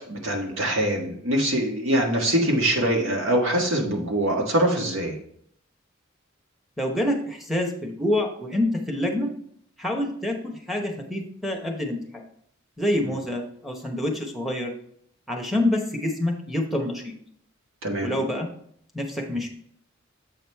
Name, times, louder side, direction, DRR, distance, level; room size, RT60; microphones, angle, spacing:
voice 1, 0.0-5.2 13.0-13.2 17.8-18.1, right 1 dB, 75° right, 1 dB, 1.6 m, -23 dB
voice 2, 6.8-9.3 9.8-12.2 12.8-14.7 15.3-17.1 18.0-18.5 18.9-19.5, left 1 dB, ahead, 1 dB, 0.9 m, -27 dB
7.7 x 5.0 x 3.5 m, 0.66 s
head